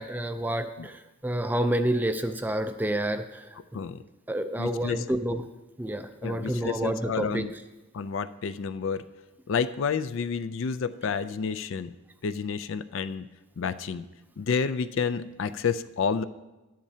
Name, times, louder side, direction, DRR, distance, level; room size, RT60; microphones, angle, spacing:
voice 1, 0.0-3.5 4.3-5.4 5.8-7.4, right 1 dB, 10° right, 8 dB, 0.3 m, -29 dB
voice 2, 4.6-5.1 6.2-7.5 7.9-9.0 9.5-11.9 12.2-13.3 13.6-14.1 14.4-16.2, left 6 dB, 65° left, 13 dB, 0.4 m, -30 dB
13.0 x 10.0 x 2.8 m, 1.1 s
head